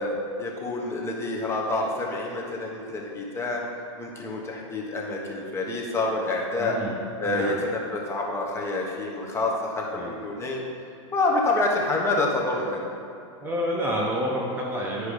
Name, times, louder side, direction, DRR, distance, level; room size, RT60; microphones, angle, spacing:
voice 1, 0.0-3.6 4.0-6.8 7.2-10.6 11.1-12.9, left 2 dB, 15° left, -2 dB, 1.1 m, -27 dB
voice 2, 6.6-7.0 7.3-7.6 9.9-10.1 13.4-15.1, equal, 15° right, -3 dB, 0.8 m, -28 dB
9.8 x 4.9 x 5.0 m, 2.5 s
supercardioid pair, 145°, 16 cm